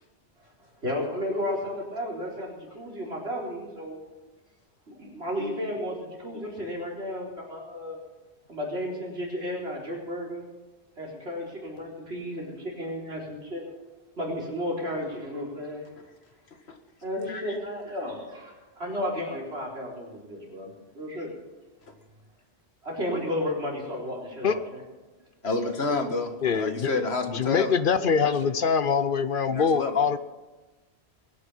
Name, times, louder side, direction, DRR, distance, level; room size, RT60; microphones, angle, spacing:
voice 1, 0.8-4.0 4.9-6.0 6.2-8.0 8.5-10.4 11.0-13.7 14.2-15.9 17.0-21.3 22.8-24.8 25.6-25.7, left 1 dB, 75° right, -2 dB, 4.4 m, -33 dB
voice 2, 25.4-28.5 29.5-29.9, left 3 dB, 75° left, 6 dB, 1.9 m, -30 dB
voice 3, 26.4-26.9 27.3-30.2, left 6 dB, 55° left, 13 dB, 0.8 m, -23 dB
21.0 x 9.8 x 5.6 m, 1.2 s
omnidirectional pair, 1.1 m